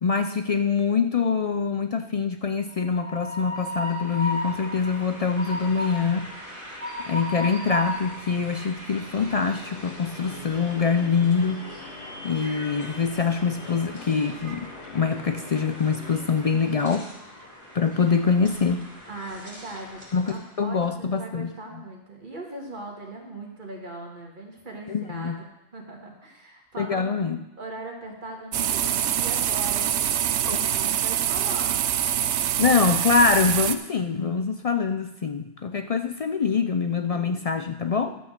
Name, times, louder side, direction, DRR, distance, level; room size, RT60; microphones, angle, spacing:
voice 1, 0.0-6.3 7.0-11.7 12.2-17.1 17.7-18.9 20.1-21.5 24.9-25.4 26.8-27.4 30.4-30.7 32.6-38.2, left 5 dB, 50° left, 8 dB, 0.4 m, -24 dB
Train, 2.7-20.5, left 1 dB, 15° right, 3.2 m, -37 dB
Guitar, 9.1-16.5, left 3 dB, 80° left, 1.6 m, -43 dB
voice 2, 19.1-20.0 20.3-25.5 25.7-30.0 30.6-31.9, right 2 dB, 45° right, 0 dB, 2.2 m, -39 dB
sound 1, 28.5-33.8, right 10 dB, 85° right, 0.9 m, -25 dB
12.0 x 6.3 x 6.6 m, 0.93 s
omnidirectional pair, 1.1 m